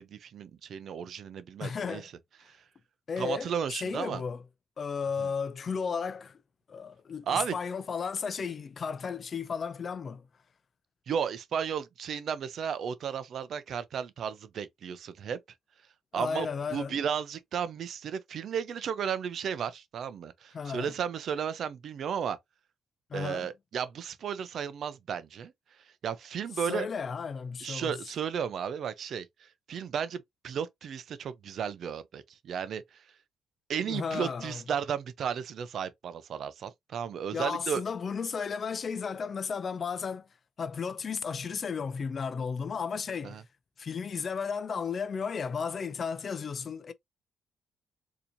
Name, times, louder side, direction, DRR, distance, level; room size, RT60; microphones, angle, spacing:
voice 1, 0.0-2.1 2.4-2.6 3.2-4.2 5.2-5.3 7.3-7.5 11.1-15.4 16.1-22.4 23.1-25.5 26.0-26.9 27.6-33.0 33.7-37.8 43.2-43.4, right 7 dB, 65° right, 0.5 m, -34 dB
voice 2, 1.6-2.1 3.1-4.4 4.8-6.4 6.7-10.3 16.1-17.0 20.5-20.9 23.1-23.5 26.6-28.0 33.8-34.6 37.3-40.3 40.6-43.4 43.8-46.9, left 6 dB, 45° left, 0.4 m, -34 dB
4.2 x 2.8 x 2.6 m
cardioid pair, 90°, 0 cm